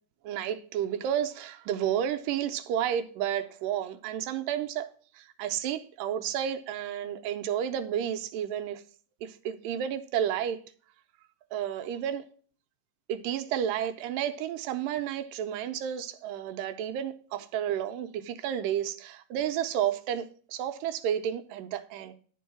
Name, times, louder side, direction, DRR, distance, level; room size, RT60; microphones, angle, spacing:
voice 1, 0.2-4.9 5.2-8.8 9.2-10.6 11.5-12.2 13.1-22.1, right 10 dB, 90° right, 2.3 m, -31 dB
11.0 x 4.6 x 4.9 m
omnidirectional pair, 3.9 m